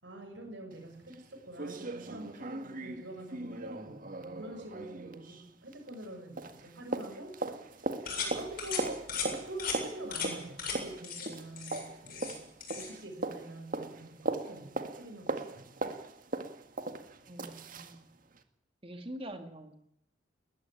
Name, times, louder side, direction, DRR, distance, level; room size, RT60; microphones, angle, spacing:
voice 1, 0.0-7.4 8.2-12.4 12.7-15.7, right 1 dB, 70° right, 5 dB, 6.6 m, -45 dB
sound 1, 0.7-0.8 1.1-1.2 1.6-6.1 6.4-18.0 18.4-18.5, right 2 dB, 45° right, 1.8 m, -39 dB
sound 2, 8.1-8.3 8.6-8.8 9.1-9.3 9.6-9.8 10.1-10.3 10.6-10.8 11.0-11.3 11.6-12.4 12.6-12.9, left 6 dB, 50° left, 7.6 m, -36 dB
voice 2, 17.3-18.0 18.8-19.8, right 1 dB, 30° right, 6 dB, 2.1 m, -44 dB
21.5 x 14.5 x 9.1 m, 0.78 s
head